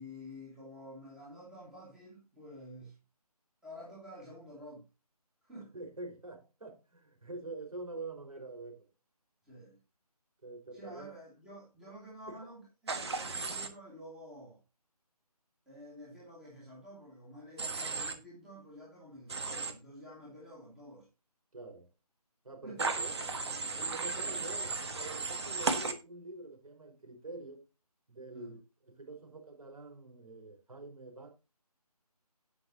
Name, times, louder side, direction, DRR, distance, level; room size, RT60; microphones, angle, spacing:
voice 1, 0.0-3.0 3.6-4.8 5.4-5.7 9.4-9.8 10.7-14.6 15.7-21.1 22.6-22.8 24.2-24.3 28.3-28.6, equal, 5° right, 2.1 m, -50 dB
voice 2, 5.7-8.9 10.4-11.1 12.3-12.5 21.5-21.9 22.4-23.3 23.8-27.6 28.1-31.3, right 2 dB, 60° right, 4.8 m, -46 dB
Human voice / Train, 12.9-13.7 17.6-18.1 19.3-19.7 22.8-25.9, right 4 dB, 40° right, 1.5 m, -35 dB
18.0 x 6.1 x 2.8 m
figure-of-eight pair, 160°, 20 cm